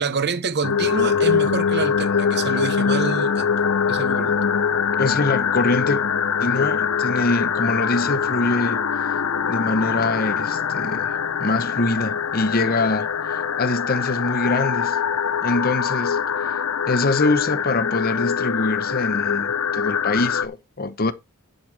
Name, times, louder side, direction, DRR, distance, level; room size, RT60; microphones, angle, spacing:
voice 1, 0.0-3.5 3.9-4.4, right 4 dB, 50° right, 1.0 m, -27 dB
sound 1, 0.6-20.5, left 7 dB, 65° left, 0.7 m, -23 dB
voice 2, 5.0-6.1 6.4-8.8 9.5-11.1 11.4-15.0 15.4-16.3 16.9-21.1, left 2 dB, 40° left, 0.9 m, -24 dB
11.0 x 8.0 x 3.4 m
head